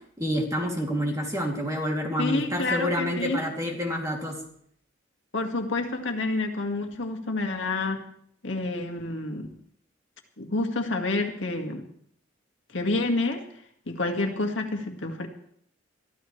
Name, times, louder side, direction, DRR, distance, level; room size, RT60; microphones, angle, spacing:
voice 1, 0.2-4.4, equal, 15° right, 0 dB, 2.8 m, -28 dB
voice 2, 2.2-3.4 5.3-8.0 8.4-9.5 10.4-11.9 12.7-13.4 13.9-15.3, left 2 dB, 70° left, 4 dB, 1.9 m, -28 dB
23.0 x 14.0 x 3.3 m, 0.64 s
head